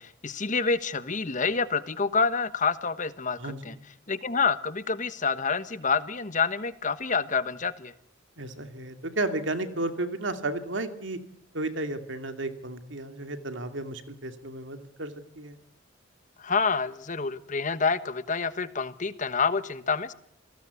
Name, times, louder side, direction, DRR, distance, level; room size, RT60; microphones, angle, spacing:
voice 1, 0.0-3.7 4.1-7.9 16.4-20.1, left 5 dB, 40° left, 13 dB, 1.2 m, -28 dB
voice 2, 3.4-3.8 8.4-11.2 11.5-15.6, right 2 dB, 70° right, 8 dB, 2.6 m, -33 dB
28.0 x 19.0 x 8.4 m, 0.70 s
head